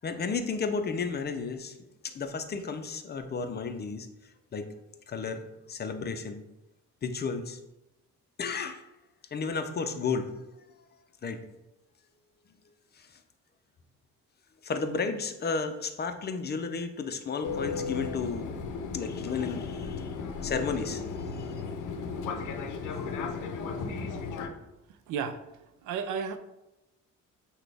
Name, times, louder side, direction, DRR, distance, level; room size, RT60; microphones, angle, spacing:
voice 1, 0.0-1.8 2.0-4.1 4.5-4.6 5.1-5.4 5.7-6.4 7.0-7.6 8.4-8.8 9.3-10.4 11.2-11.4 14.6-18.5 18.9-20.1 20.4-21.4 22.6-23.1, left 5 dB, 35° left, 7 dB, 0.4 m, -33 dB
Fixed-wing aircraft airplane, 17.4-24.5, left 5 dB, 85° left, 0.6 m, -35 dB
voice 2, 25.1-25.4 25.8-26.4, right 6 dB, 80° right, 10 dB, 0.5 m, -33 dB
5.9 x 2.2 x 3.3 m, 0.94 s
cardioid pair, 90°, 30 cm